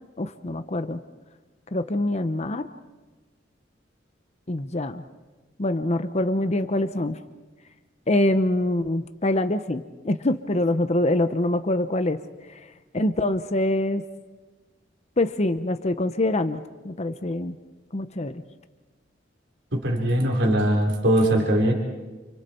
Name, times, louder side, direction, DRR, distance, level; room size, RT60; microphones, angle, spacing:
voice 1, 0.2-1.0 1.7-2.7 4.5-5.0 5.6-7.2 8.1-12.2 12.5-12.6 12.9-14.0 15.2-17.5 17.9-18.4, left 1 dB, 35° left, 10 dB, 0.9 m, -25 dB
voice 2, 19.7-21.7, right 1 dB, 70° right, 1 dB, 4.0 m, -21 dB
30.0 x 27.5 x 4.5 m, 1.3 s
head